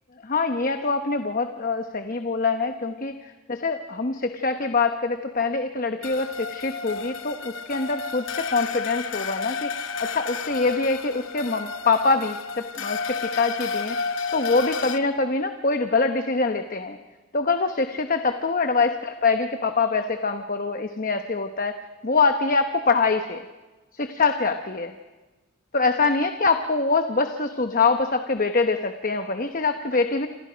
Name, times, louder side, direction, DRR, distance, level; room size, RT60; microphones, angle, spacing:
voice 1, 0.2-9.7 10.0-14.0 14.3-17.0 17.3-21.8 22.0-23.4 23.9-24.9 25.7-30.3, left 4 dB, 40° left, 7 dB, 0.9 m, -24 dB
sound 1, 6.0-15.0, left 5 dB, 65° left, 0.9 m, -31 dB
28.0 x 27.5 x 5.1 m, 1.2 s
head